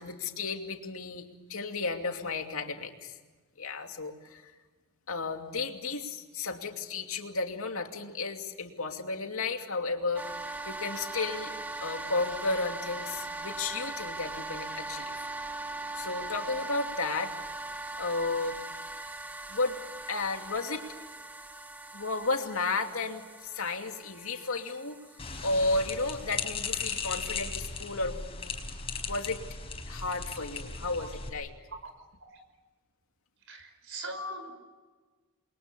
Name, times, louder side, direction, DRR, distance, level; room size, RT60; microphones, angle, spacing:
voice 1, 0.0-3.2 3.6-4.5 5.1-11.5 11.8-15.3 15.9-17.3 18.0-18.6 19.5-19.8 20.1-20.9 21.9-25.0 25.4-28.5 29.0-29.4 29.9-31.5, left 3 dB, 70° left, 4 dB, 2.7 m, -33 dB
sound 1, 10.2-26.9, right 2 dB, 10° right, 1.2 m, -40 dB
sound 2, 25.2-31.3, left 5 dB, 25° left, 5.1 m, -37 dB
voice 2, 33.5-34.5, equal, 60° right, 6 dB, 5.6 m, -40 dB
29.5 x 23.0 x 6.9 m, 1.3 s
head